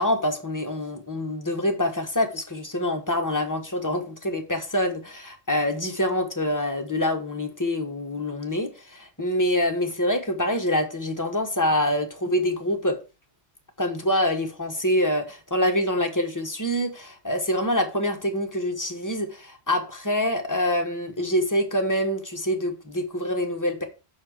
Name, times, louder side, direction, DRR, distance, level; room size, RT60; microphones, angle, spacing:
voice 1, 0.0-13.0 13.8-23.8, left 1 dB, 15° left, 1.3 m, -25 dB
6.5 x 4.3 x 6.3 m
omnidirectional pair, 1.2 m